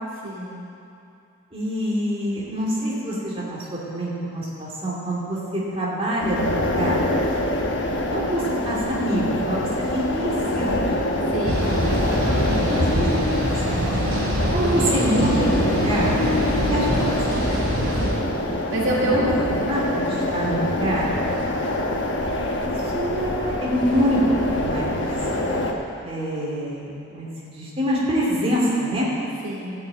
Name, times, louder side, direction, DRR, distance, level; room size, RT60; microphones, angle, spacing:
voice 1, 0.2-0.6 11.3-11.7 12.2-12.4 18.0-18.3 18.7-19.3 19.6-19.7 29.4-29.7, right 1 dB, 70° right, -5 dB, 2.6 m, -27 dB
voice 2, 1.5-7.0 8.1-10.8 12.4-14.1 14.5-16.2 16.7-17.4 19.1-19.3 19.7-21.1 22.6-24.2 24.5-25.0 26.0-29.1, equal, 25° right, -7 dB, 2.8 m, -26 dB
sound 1, 6.2-25.7, left 1 dB, 60° left, 1.2 m, -25 dB
sound 2, 11.4-18.1, equal, 50° right, 3.3 m, -24 dB
13.5 x 6.9 x 8.7 m, 2.6 s
head